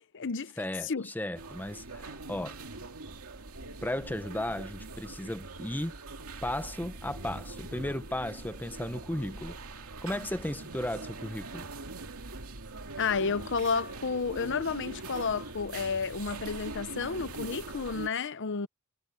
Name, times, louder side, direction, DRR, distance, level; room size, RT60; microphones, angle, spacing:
voice 1, 0.0-0.5 0.8-1.1 13.0-18.7, left 5 dB, 55° left, 0.8 m, -31 dB
voice 2, 0.6-2.6 3.8-6.0 6.4-11.7, left 1 dB, 10° left, 0.9 m, -35 dB
sound 1, 1.3-18.1, right 3 dB, 90° right, 2.3 m, -42 dB
head